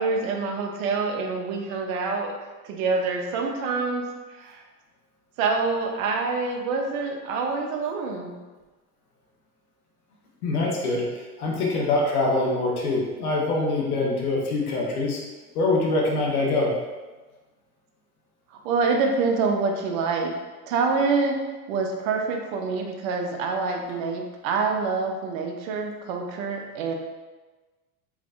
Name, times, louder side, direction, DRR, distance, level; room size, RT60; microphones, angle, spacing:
voice 1, 0.0-2.3 2.6-4.0 4.4-4.6 5.4-8.3 18.6-20.3 20.7-21.4 21.7-26.9, right 4 dB, 60° right, 3 dB, 0.7 m, -26 dB
voice 2, 10.4-11.0 11.4-15.2 15.5-16.7, left 2 dB, 75° left, -2 dB, 1.0 m, -24 dB
3.4 x 3.0 x 2.4 m, 1.2 s
hypercardioid pair, 90°, 45 cm